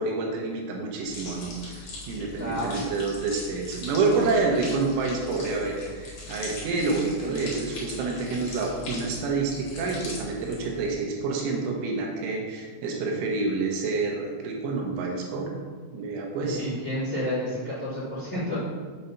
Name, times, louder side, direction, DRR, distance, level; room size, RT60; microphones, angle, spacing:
voice 1, 0.0-15.5 15.9-16.6, right 3 dB, 80° right, 0 dB, 3.5 m, -28 dB
sound 1, 1.0-10.9, left 2 dB, 50° left, 2.5 m, -40 dB
voice 2, 2.4-2.8 7.2-7.6 16.4-18.6, left 1 dB, 35° left, -10 dB, 2.0 m, -31 dB
7.8 x 4.0 x 5.7 m, 1.5 s
omnidirectional pair, 5.5 m